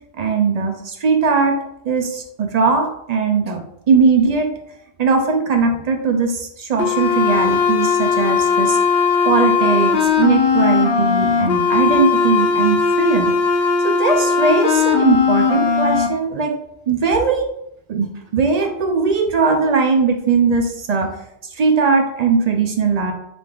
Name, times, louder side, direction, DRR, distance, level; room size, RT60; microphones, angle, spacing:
voice 1, 0.2-1.6 1.8-3.6 3.9-4.5 5.0-8.8 9.2-13.3 13.8-16.5 16.9-17.5 17.9-18.1 18.3-21.1 21.5-23.1, right 4 dB, 55° right, 4 dB, 0.4 m, -19 dB
sound 1, 6.8-16.1, left 5 dB, 75° left, 0.8 m, -18 dB
3.4 x 3.4 x 2.3 m, 0.77 s
omnidirectional pair, 1.1 m